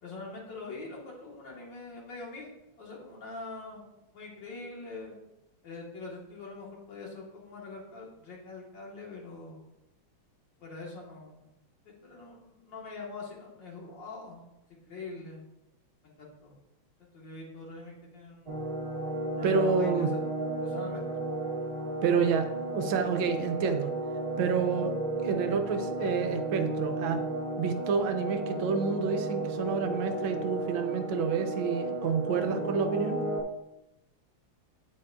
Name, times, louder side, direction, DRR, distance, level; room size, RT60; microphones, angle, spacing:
voice 1, 0.0-2.5 2.8-3.8 4.1-5.2 5.6-9.6 10.6-11.5 11.9-14.4 14.7-15.4 16.0-16.5 17.0-18.6 19.4-20.2 20.6-21.0, left 3 dB, 60° left, -2 dB, 2.2 m, -44 dB
sound 1, 18.5-33.4, right 2 dB, 55° right, 0.3 m, -33 dB
voice 2, 19.4-20.1 22.0-23.9 24.4-24.9 25.2-27.2 27.6-33.2, right 6 dB, 80° right, 8 dB, 1.4 m, -29 dB
8.8 x 8.2 x 2.5 m, 0.90 s
omnidirectional pair, 2.3 m